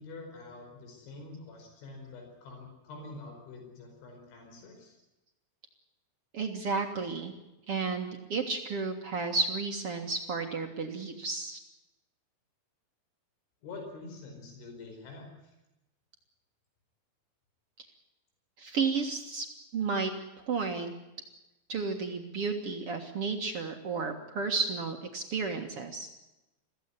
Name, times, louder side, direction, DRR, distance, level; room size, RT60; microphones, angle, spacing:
voice 1, 0.0-5.0 13.6-15.3, left 3 dB, 75° left, 3 dB, 7.3 m, -46 dB
voice 2, 6.3-7.3 7.7-11.6 18.6-19.5 19.7-20.1 20.5-20.9 21.7-26.1, right 4 dB, 65° right, 4 dB, 1.4 m, -32 dB
22.0 x 16.0 x 9.7 m, 0.97 s
omnidirectional pair, 5.4 m